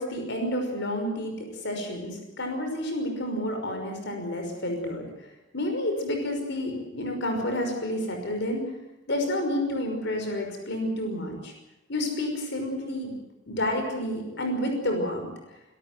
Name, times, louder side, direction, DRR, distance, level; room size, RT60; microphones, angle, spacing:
voice 1, 0.0-5.0 5.5-8.7 9.1-11.5 11.9-13.2 13.5-15.3, left 1 dB, 65° left, 3 dB, 5.8 m, -30 dB
26.0 x 13.5 x 9.4 m, 0.99 s
head